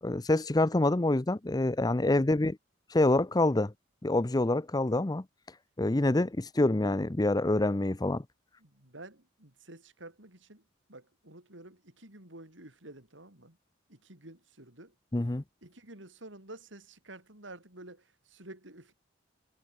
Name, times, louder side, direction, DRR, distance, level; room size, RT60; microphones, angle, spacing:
voice 1, 0.0-2.5 2.9-3.7 4.0-5.2 5.8-8.2 15.1-15.4, left 2 dB, 20° left, 0.6 m, -26 dB
voice 2, 8.6-13.6 13.9-14.9 15.6-18.9, right 2 dB, 75° right, 5.8 m, -50 dB
head